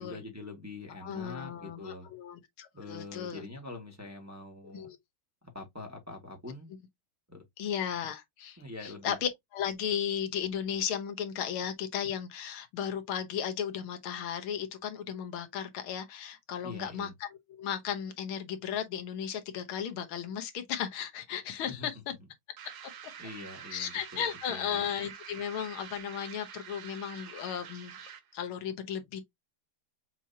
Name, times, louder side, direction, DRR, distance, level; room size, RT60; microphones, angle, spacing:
voice 1, 0.0-2.1 2.7-4.9 5.5-6.7 7.3-7.4 8.6-9.2 16.6-17.1 21.7-21.9 23.2-24.8, left 2 dB, 10° right, 1.3 m, -44 dB
voice 2, 1.0-3.5 4.7-5.0 7.6-17.3 17.6-22.1 23.7-27.9 28.3-29.2, left 8 dB, 80° left, 1.8 m, -35 dB
sound 1, 22.6-28.4, right 8 dB, 60° right, 1.3 m, -47 dB
6.1 x 2.9 x 2.7 m
omnidirectional pair, 2.3 m